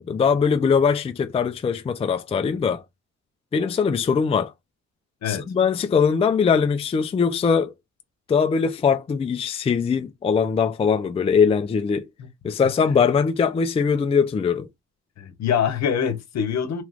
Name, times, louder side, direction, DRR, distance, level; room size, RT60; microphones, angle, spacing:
voice 1, 0.1-2.8 3.5-4.5 5.3-7.7 8.3-12.0 12.4-14.7, left 6 dB, 20° left, 0.4 m, -21 dB
voice 2, 15.2-16.8, left 8 dB, 60° left, 0.9 m, -24 dB
3.0 x 2.3 x 3.2 m
cardioid pair, 90°, 30 cm